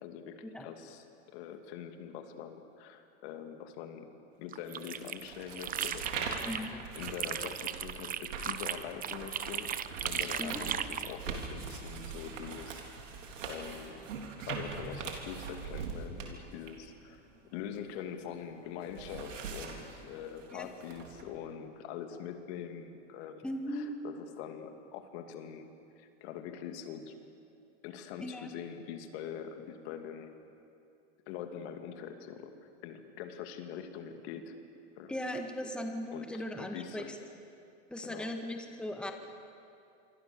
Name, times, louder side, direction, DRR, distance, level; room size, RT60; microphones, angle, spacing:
voice 1, 0.0-1.0 1.3-4.1 4.4-9.7 10.0-12.8 13.1-14.0 14.4-17.3 17.5-27.1 27.8-30.4 31.3-32.5 32.8-34.5 35.0-35.3 36.1-37.1 38.0-38.3, left 8 dB, 60° left, 6 dB, 2.6 m, -44 dB
sound 1, 4.5-6.7 7.0-11.2, right 9 dB, 25° right, 0.9 m, -37 dB
sound 2, 4.7-18.2 18.6-21.2, right 5 dB, 90° right, 3.9 m, -42 dB
voice 2, 6.4-6.9 10.4-10.6 20.5-20.7 23.4-24.0 28.2-28.5 35.1-37.2 37.9-39.1, left 1 dB, 5° left, 4 dB, 1.8 m, -38 dB
27.5 x 24.5 x 7.0 m, 2.6 s
supercardioid pair, 125°, 37 cm